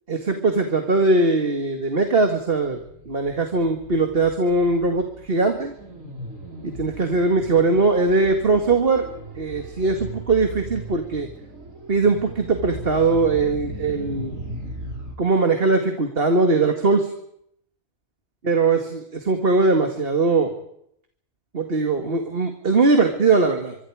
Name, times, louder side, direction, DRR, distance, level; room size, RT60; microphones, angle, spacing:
voice 1, 0.1-5.7 6.6-9.1 9.4-11.3 11.9-14.4 15.2-17.1 18.4-20.5 21.5-23.8, right 3 dB, 45° right, 5 dB, 2.2 m, -20 dB
sound 1, 2.2-15.2, right 1 dB, 85° right, 5.0 m, -38 dB
25.5 x 23.5 x 4.9 m, 0.70 s
omnidirectional pair, 1.3 m